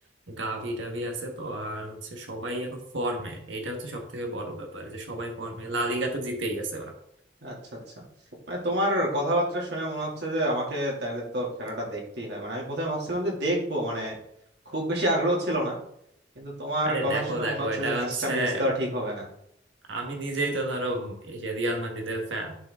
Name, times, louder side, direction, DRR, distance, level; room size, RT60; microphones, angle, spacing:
voice 1, 0.3-6.9 16.8-18.6 19.9-22.6, right 1 dB, 90° right, 2 dB, 1.4 m, -31 dB
voice 2, 7.4-7.8 8.5-14.2 14.7-15.8 16.4-19.3, equal, 65° right, -2 dB, 2.5 m, -28 dB
10.5 x 4.9 x 3.6 m, 0.73 s
head